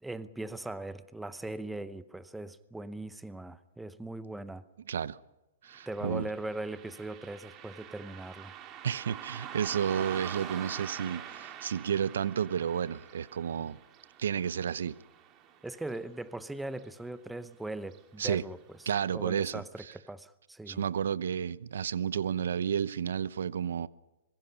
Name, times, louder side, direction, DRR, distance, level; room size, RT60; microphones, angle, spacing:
voice 1, 0.0-4.6 5.9-8.5 15.6-18.6 19.1-20.8, right 2 dB, 5° right, 0.8 m, -40 dB
voice 2, 4.9-5.2 5.6-6.3 8.8-13.8 14.2-14.9 18.2-18.4 18.9-19.6 20.7-23.9, right 8 dB, 75° right, 0.8 m, -31 dB
Car passing by, 5.7-16.5 16.8-16.9 17.8-18.0 18.5-18.6 19.1-19.2, right 9 dB, 30° right, 2.3 m, -45 dB
25.5 x 22.0 x 5.7 m
hypercardioid pair, 140°, 0 cm